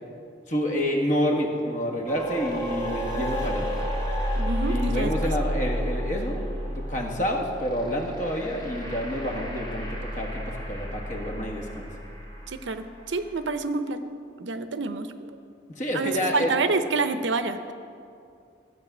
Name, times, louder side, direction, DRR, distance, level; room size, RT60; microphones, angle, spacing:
voice 1, 0.5-3.7 4.6-11.9 15.8-16.5, equal, 40° left, 1 dB, 1.5 m, -28 dB
sound 1, 2.1-13.1, equal, 25° left, 1.8 m, -31 dB
voice 2, 4.3-5.1 12.5-14.0 14.4-15.1 15.9-17.7, right 3 dB, 75° right, 10 dB, 0.7 m, -28 dB
14.0 x 8.1 x 6.0 m, 2.4 s
head